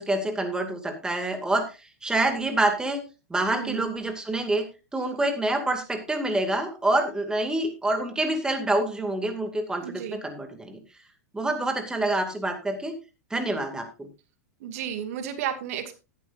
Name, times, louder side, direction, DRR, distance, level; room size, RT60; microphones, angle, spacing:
voice 1, 0.0-1.7 2.0-3.0 3.3-4.6 4.9-10.8 11.3-12.9 13.3-14.1, right 2 dB, 10° right, 6 dB, 2.3 m, -27 dB
voice 2, 3.5-3.9 9.8-10.2 14.6-15.9, right 9 dB, 60° right, 8 dB, 2.3 m, -33 dB
14.5 x 11.0 x 2.6 m, 0.29 s
hypercardioid pair, 105°, 9 cm